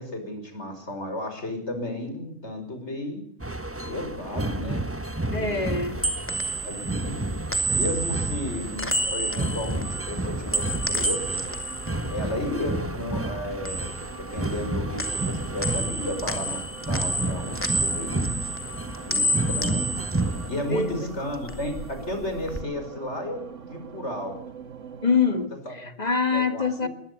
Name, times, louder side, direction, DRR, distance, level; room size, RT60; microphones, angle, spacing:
voice 1, 0.0-3.2 3.9-4.9 5.3-5.7 6.6-7.3 7.7-11.4 12.1-18.5 19.1-19.9 20.5-24.4 25.7-25.9 26.3-26.9, left 1 dB, 65° left, 6.1 m, -33 dB
sound 1, 3.4-20.5, right 2 dB, 10° right, 1.1 m, -31 dB
voice 2, 5.3-6.0 10.4-10.5 20.7-21.1 25.0-26.9, left 4 dB, 35° left, 2.1 m, -25 dB
sound 2, 5.7-13.0 13.3-14.7 15.0-21.0 21.3-22.6, right 1 dB, 10° left, 2.5 m, -30 dB
sound 3, 9.8-25.5, right 6 dB, 80° right, 1.7 m, -44 dB
21.0 x 20.0 x 8.5 m
omnidirectional pair, 1.3 m